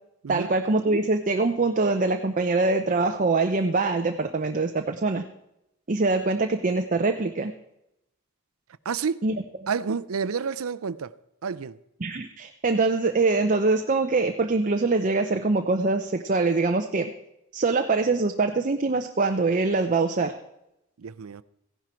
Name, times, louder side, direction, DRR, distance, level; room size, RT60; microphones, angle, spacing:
voice 1, 0.3-5.2 5.9-7.5 9.2-9.3 12.0-17.1 17.5-20.3, right 3 dB, 40° right, 0.7 m, -23 dB
voice 2, 8.8-9.2 9.7-11.1 11.4-11.8 21.0-21.4, right 5 dB, 85° right, 0.5 m, -29 dB
15.5 x 11.0 x 4.4 m
head